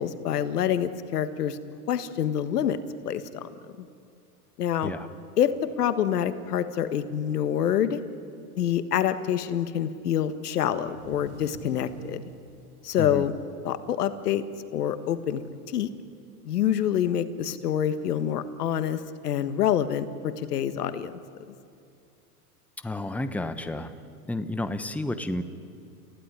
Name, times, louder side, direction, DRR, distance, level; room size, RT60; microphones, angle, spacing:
voice 1, 0.0-1.6 1.9-2.8 3.0-3.5 4.6-4.9 5.4-8.0 8.6-12.2 12.8-13.3 13.6-14.4 14.7-15.9 16.4-21.1, left 9 dB, 80° left, 12 dB, 1.6 m, -26 dB
sound 1, 10.6-14.3 14.7-14.8 15.2-15.6 16.8-16.9 17.9-18.0, right 2 dB, 75° right, 7.4 m, -49 dB
voice 2, 22.8-23.9 24.3-25.4, left 1 dB, 5° left, 10 dB, 1.1 m, -31 dB
30.0 x 15.5 x 10.0 m, 2.5 s
hypercardioid pair, 115°, 46 cm